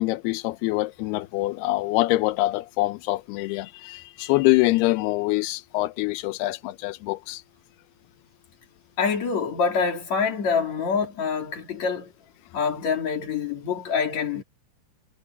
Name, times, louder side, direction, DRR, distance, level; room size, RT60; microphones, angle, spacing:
voice 1, 0.0-7.4, left 19 dB, 90° left, 2.3 m, -25 dB
voice 2, 9.0-12.1 12.5-14.4, left 5 dB, 40° left, 4.1 m, -26 dB
omnidirectional pair, 5.5 m